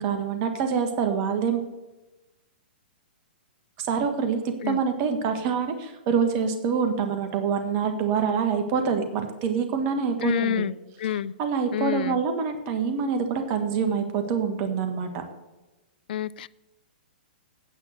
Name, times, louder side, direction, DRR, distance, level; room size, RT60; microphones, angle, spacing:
voice 1, 0.0-1.6 3.8-10.6 11.4-15.2, right 6 dB, 40° right, 7 dB, 1.4 m, -26 dB
voice 2, 10.2-10.7 11.0-11.3 11.7-12.2 16.1-16.5, left 10 dB, 60° left, 20 dB, 0.4 m, -27 dB
9.0 x 5.9 x 8.3 m, 1.1 s
hypercardioid pair, 120°, 5 cm